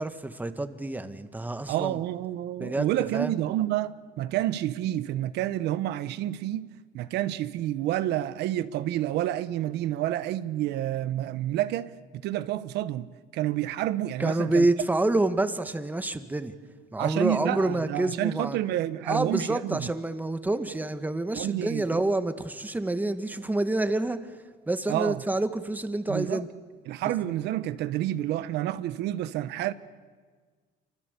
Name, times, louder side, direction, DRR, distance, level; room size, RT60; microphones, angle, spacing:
voice 1, 0.0-2.0 2.6-3.3 14.2-16.6 16.9-18.6 19.1-24.2 24.7-26.5, right 2 dB, 10° right, 1.7 m, -28 dB
voice 2, 1.7-6.7 6.9-14.7 17.0-19.9 21.3-22.0 24.9-25.2 26.1-26.4 26.9-29.7, right 13 dB, 80° right, 1.0 m, -29 dB
27.0 x 24.5 x 8.3 m
cardioid pair, 110°, 17 cm